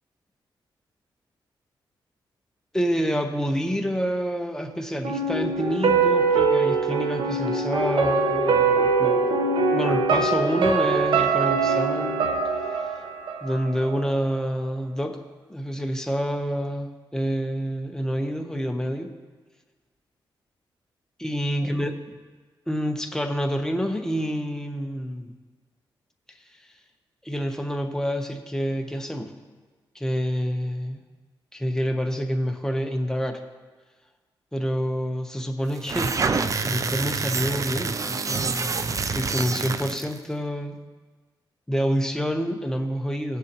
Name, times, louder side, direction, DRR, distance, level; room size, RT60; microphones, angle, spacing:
voice 1, 2.7-9.3 9.7-12.4 13.4-15.2 15.5-19.2 21.2-21.9 22.7-25.4 27.2-29.3 29.9-31.0 31.5-33.4 34.5-40.8 41.7-43.4, equal, 5° left, 5 dB, 1.0 m, -28 dB
sound 1, 5.0-14.0 14.3-14.4, right 4 dB, 75° right, 1.1 m, -23 dB
sound 2, 35.7-40.2, right 4 dB, 40° right, 0.5 m, -27 dB
17.0 x 7.1 x 3.0 m, 1.4 s
cardioid pair, 80°, 9 cm